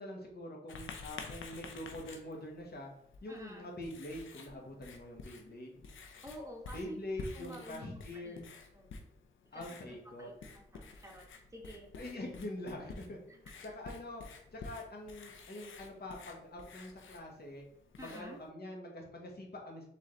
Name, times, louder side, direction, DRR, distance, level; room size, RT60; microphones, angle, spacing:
voice 1, 0.0-2.9 3.2-5.8 6.7-8.5 9.5-10.3 12.0-14.2 14.5-17.6 18.0-19.9, left 1 dB, 55° left, 0 dB, 1.5 m, -44 dB
Writing, 0.7-18.5, left 4 dB, 85° left, 0.6 m, -51 dB
voice 2, 3.3-3.7 6.2-7.0 7.3-8.4 8.7-9.0 9.5-11.3 11.5-11.9 18.0-18.4, equal, 15° right, 0 dB, 1.3 m, -50 dB
4.0 x 3.8 x 3.2 m, 0.70 s
cardioid pair, 55°, 20 cm